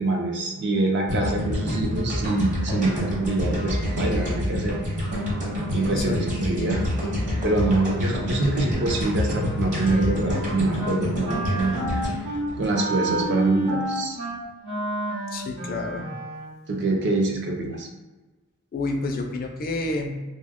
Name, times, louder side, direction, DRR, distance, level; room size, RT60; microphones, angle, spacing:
voice 1, 0.0-4.8 5.7-6.8 7.4-11.8 12.6-14.2 16.7-17.9, right 2 dB, 55° right, 1 dB, 0.5 m, -25 dB
sound 1, 1.1-13.3, left 1 dB, 35° right, 0.9 m, -27 dB
voice 2, 5.9-6.2 15.3-16.1 18.7-20.2, left 2 dB, 40° left, 3 dB, 0.4 m, -29 dB
Wind instrument woodwind instrument, 9.3-10.5 10.8-11.0 11.2-16.5, right 1 dB, 90° right, 0.7 m, -30 dB
2.6 x 2.1 x 3.5 m, 1.2 s
head